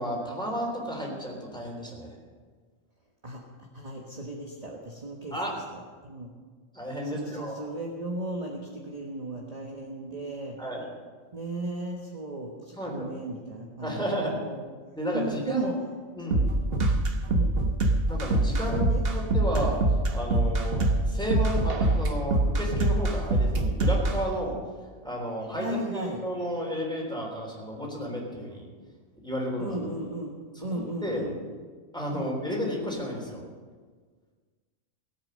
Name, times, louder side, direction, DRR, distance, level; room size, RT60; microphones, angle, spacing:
voice 1, 0.0-2.2 5.3-5.5 6.7-7.6 10.6-10.9 12.8-13.1 13.8-14.3 15.0-15.7 16.2-16.5 18.1-18.9 19.1-19.8 20.1-24.6 25.0-28.7 29.2-29.8 30.6-31.3 31.9-33.4, equal, 5° left, -2 dB, 3.5 m, -32 dB
voice 2, 3.7-5.4 5.7-6.3 7.0-10.6 11.3-14.1 14.4-14.6 15.1-15.7 17.3-17.6 18.5-19.0 25.6-26.2 29.6-30.3 30.6-31.3 32.1-32.3, right 1 dB, 30° right, -1 dB, 1.4 m, -35 dB
sound 1, 16.3-24.2, right 2 dB, 50° right, 1.2 m, -24 dB
18.0 x 8.8 x 6.5 m, 1.5 s
omnidirectional pair, 1.4 m